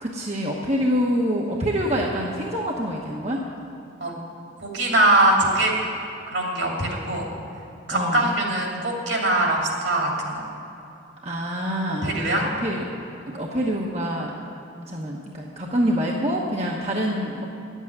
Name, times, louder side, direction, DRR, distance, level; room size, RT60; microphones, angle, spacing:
voice 1, 0.0-3.4 7.9-8.3 11.2-12.1 12.4-12.9 13.3-14.3 14.9-17.4, equal, 35° right, -2 dB, 1.0 m, -26 dB
voice 2, 4.6-5.7 6.3-7.3 7.9-10.4 12.0-12.4, right 1 dB, 70° right, -1 dB, 2.7 m, -22 dB
9.9 x 8.3 x 9.7 m, 2.8 s
head